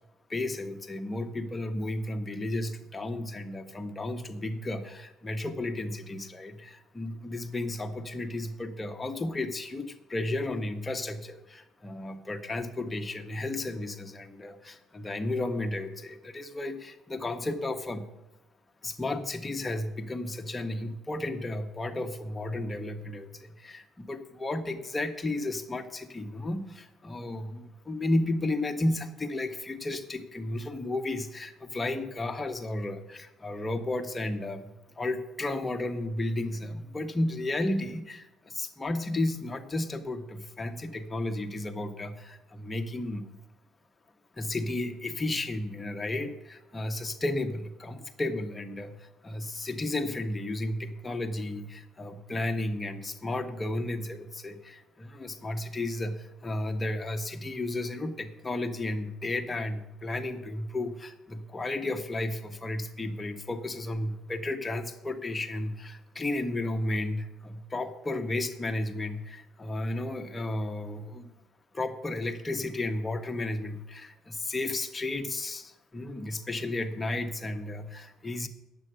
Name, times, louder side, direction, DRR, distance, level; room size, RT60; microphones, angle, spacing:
voice 1, 0.3-18.1 18.8-34.7 34.9-43.3 44.4-71.3 71.7-78.5, left 2 dB, 15° left, 5 dB, 0.9 m, -33 dB
9.9 x 7.6 x 7.9 m, 0.96 s
cardioid pair, 155°, 0 cm